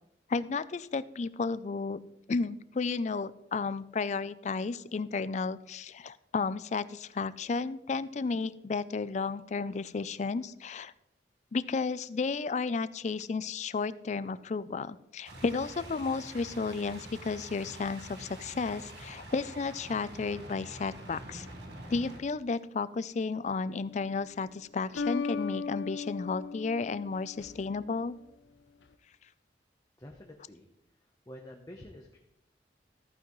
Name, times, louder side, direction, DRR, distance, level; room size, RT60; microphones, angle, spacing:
voice 1, 0.3-2.0 2.3-10.9 11.5-21.5 21.9-28.2, left 4 dB, 40° left, 16 dB, 0.4 m, -33 dB
sound 1, 15.2-22.2, right 1 dB, 70° right, 1.6 m, -46 dB
sound 2, 23.7-24.2 24.9-27.8, left 4 dB, 85° left, 0.6 m, -37 dB
voice 2, 30.0-30.7 31.3-32.2, left 1 dB, 20° left, 1 dB, 0.8 m, -48 dB
14.0 x 9.0 x 3.1 m, 0.80 s
head